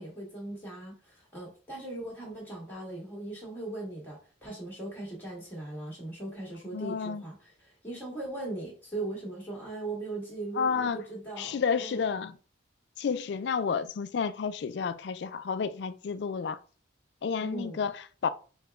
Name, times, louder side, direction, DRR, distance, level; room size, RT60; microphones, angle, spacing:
voice 1, 0.0-12.1 17.4-17.8, right 2 dB, 10° left, 1.7 m, -39 dB
voice 2, 6.7-7.2 10.6-11.0 11.4-12.4 13.0-16.6 17.2-18.3, left 6 dB, 60° left, 0.3 m, -31 dB
4.8 x 2.3 x 3.4 m
head